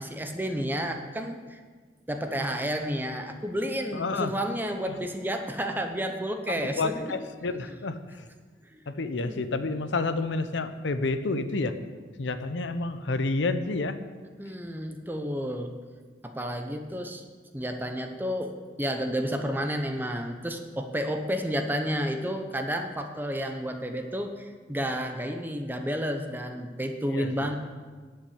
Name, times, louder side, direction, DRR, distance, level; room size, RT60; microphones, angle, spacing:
voice 1, 0.0-1.6 2.1-7.1 8.7-8.8 9.2-9.4 14.4-15.7 16.2-17.2 17.5-27.6, equal, 10° right, 5 dB, 0.8 m, -31 dB
voice 2, 3.9-4.3 4.9-5.0 6.5-8.3 8.9-11.8 12.2-14.0 27.1-27.5, left 3 dB, 75° left, 11 dB, 0.7 m, -30 dB
10.0 x 5.7 x 8.5 m, 1.5 s
head